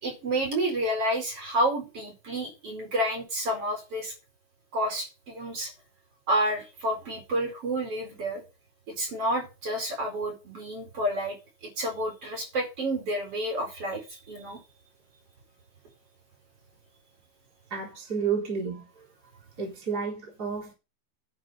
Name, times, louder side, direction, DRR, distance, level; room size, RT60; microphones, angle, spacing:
voice 1, 0.0-4.1 4.7-5.7 6.3-8.4 8.9-11.4 11.6-14.0 14.3-14.6, right 1 dB, 45° right, 5.4 m, -29 dB
voice 2, 17.7-18.8 19.6-20.7, right 6 dB, 30° right, 4.3 m, -31 dB
11.0 x 6.6 x 5.5 m
omnidirectional pair, 3.7 m